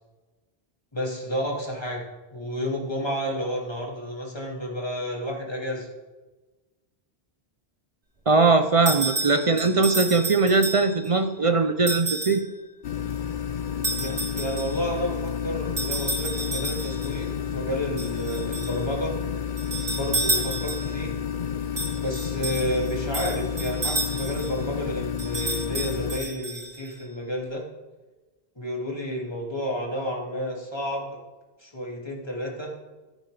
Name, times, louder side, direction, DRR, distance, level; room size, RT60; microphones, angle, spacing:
voice 1, 0.9-2.0 2.3-5.9 13.9-19.2 19.9-21.2 22.0-27.7 28.6-31.2 31.6-32.7, equal, 25° left, -2 dB, 2.3 m, -31 dB
voice 2, 8.3-12.4, right 3 dB, 40° right, 8 dB, 0.5 m, -20 dB
sound 1, 8.9-11.1 11.9-12.5 13.8-14.8 15.8-17.1 18.0-18.8 19.6-21.0 21.8-24.5 25.2-26.9, right 2 dB, 90° right, 3.0 m, -31 dB
sound 2, 12.8-26.2, left 8 dB, 55° left, 0.8 m, -31 dB
13.0 x 10.5 x 3.3 m, 1.2 s
omnidirectional pair, 1.1 m